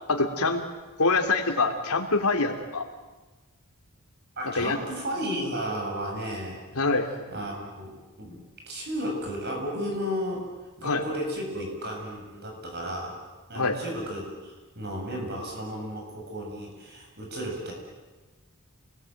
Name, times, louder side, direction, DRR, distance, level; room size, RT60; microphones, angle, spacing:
voice 1, 0.1-0.6 1.0-2.8 4.4-4.8 6.7-7.1 10.8-11.0 13.5-13.8, left 3 dB, 90° left, 4 dB, 3.2 m, -25 dB
voice 2, 4.4-6.8 7.3-10.5 10.8-13.2 13.5-17.7, equal, 50° right, 1 dB, 7.8 m, -33 dB
29.0 x 20.5 x 9.3 m, 1.2 s
head